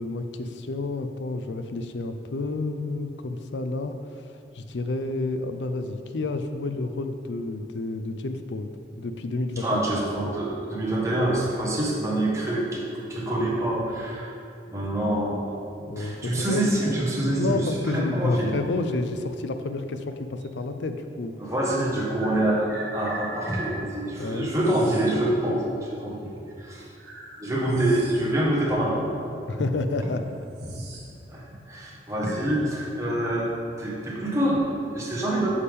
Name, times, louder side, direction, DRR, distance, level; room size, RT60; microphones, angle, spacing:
voice 1, 0.0-9.8 14.9-15.3 15.8-16.7 17.3-21.3 24.2-24.5 29.5-30.2, left 2 dB, 90° left, 8 dB, 0.5 m, -30 dB
voice 2, 9.6-14.3 14.7-15.4 16.0-18.6 21.4-26.3 26.6-26.9 27.4-29.2 31.3-33.5 33.8-35.5, right 1 dB, 15° right, -5 dB, 1.4 m, -26 dB
sound 1, 20.4-20.5 21.6-23.7 24.6-25.1 26.2-26.3 27.0-28.4 28.7-28.8 29.6-29.7 30.0-31.1 31.4-31.6 32.2-32.7, right 2 dB, 70° right, 1.6 m, -39 dB
8.5 x 6.7 x 3.6 m, 2.5 s
head